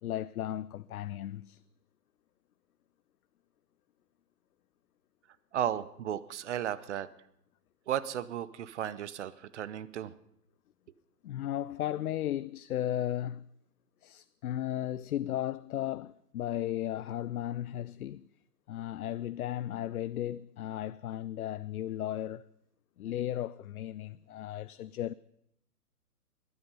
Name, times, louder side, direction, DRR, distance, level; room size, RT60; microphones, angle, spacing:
voice 1, 0.0-1.6 11.2-13.5 14.0-18.3 18.7-22.5 23.0-25.1, left 12 dB, 65° left, 0.5 m, -35 dB
voice 2, 5.5-7.1 7.9-10.1, right 10 dB, 45° right, 0.8 m, -34 dB
21.0 x 9.6 x 5.5 m
hypercardioid pair, 140°, 48 cm